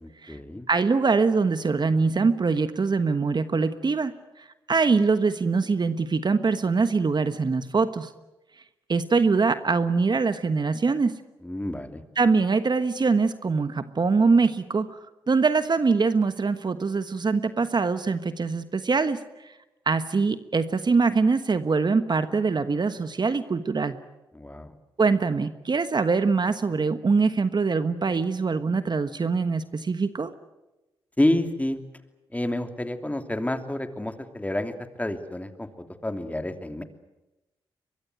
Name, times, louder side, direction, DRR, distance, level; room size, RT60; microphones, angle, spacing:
voice 1, 0.0-0.7 11.4-12.0 24.3-24.7 31.2-31.8 32.3-36.8, left 1 dB, 15° left, 7 dB, 2.8 m, -29 dB
voice 2, 0.7-8.1 8.9-11.1 12.2-15.0 15.3-19.2 19.9-24.0 25.0-30.3, right 4 dB, 45° right, 11 dB, 1.3 m, -23 dB
22.5 x 22.5 x 9.3 m, 1.0 s
supercardioid pair, 45°, 10 cm